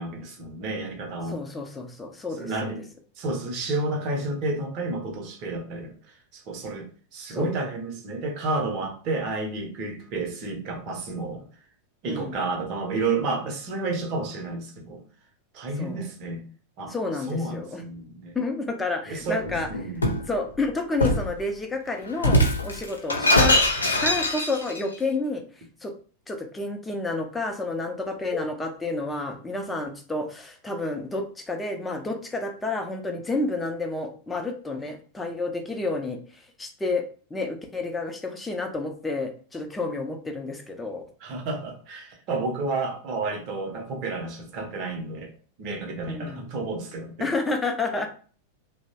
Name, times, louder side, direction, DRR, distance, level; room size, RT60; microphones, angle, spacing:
voice 1, 0.0-1.4 2.4-2.9 3.2-5.9 6.3-11.5 12.0-15.0 15.5-16.4 16.8-16.9 17.3-18.4 19.1-19.4 19.7-20.1 41.2-45.3 45.6-47.3, right 3 dB, 40° right, 3 dB, 0.7 m, -31 dB
voice 2, 1.3-2.7 7.3-7.5 12.1-12.4 15.8-16.1 16.9-17.8 18.3-19.7 20.2-23.6 24.0-25.4 25.8-25.9 26.3-37.0 37.3-41.0 46.1-46.4 47.2-48.1, left 3 dB, 10° left, 4 dB, 0.5 m, -30 dB
Shatter, 19.4-20.3 21.0-21.3 22.2-24.8, left 1 dB, 75° left, 0.5 m, -22 dB
2.9 x 2.0 x 2.7 m, 0.41 s
figure-of-eight pair, 90°, 0 cm